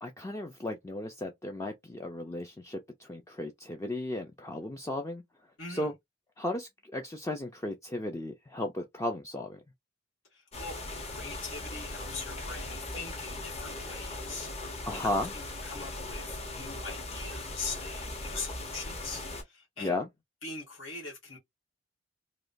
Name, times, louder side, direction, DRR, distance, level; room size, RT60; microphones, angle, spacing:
voice 1, 0.0-5.2 5.7-5.9 6.4-9.6 14.9-15.3 19.8-20.1, left 1 dB, 15° left, 0.4 m, -35 dB
voice 2, 5.6-5.9 10.3-10.8 11.0-20.0 20.4-21.4, left 4 dB, 80° left, 1.5 m, -42 dB
sound 1, 10.5-19.4, left 2 dB, 30° left, 0.8 m, -39 dB
3.0 x 2.2 x 2.5 m
head